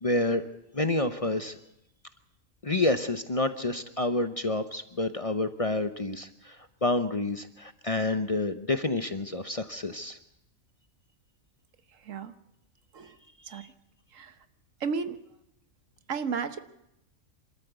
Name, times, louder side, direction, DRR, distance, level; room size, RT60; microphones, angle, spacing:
voice 1, 0.0-0.5 0.7-1.6 2.6-10.2 13.5-13.7, left 2 dB, 30° left, 9 dB, 0.8 m, -29 dB
voice 2, 14.8-15.2 16.1-16.6, right 5 dB, 75° right, 11 dB, 1.4 m, -32 dB
25.5 x 13.5 x 8.1 m, 0.84 s
omnidirectional pair, 1.4 m